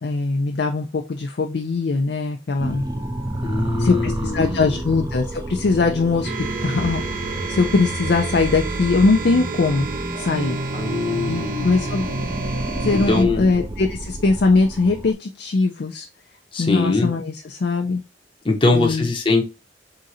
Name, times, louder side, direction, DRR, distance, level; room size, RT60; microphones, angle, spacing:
voice 1, 0.0-2.8 3.8-6.3 6.6-7.0 7.5-9.9 10.2-10.6 11.3-12.1 12.8-16.1 16.6-18.0 18.7-19.1, left 3 dB, 60° left, 0.5 m, -21 dB
sound 1, 2.6-15.1, right 1 dB, 20° right, 0.4 m, -32 dB
voice 2, 3.4-4.8 10.7-11.8 13.1-13.4 16.5-17.1 18.4-19.4, left 3 dB, 30° left, 0.7 m, -22 dB
sound 2, 6.2-13.2, right 2 dB, 50° right, 0.7 m, -28 dB
3.7 x 2.6 x 4.1 m
head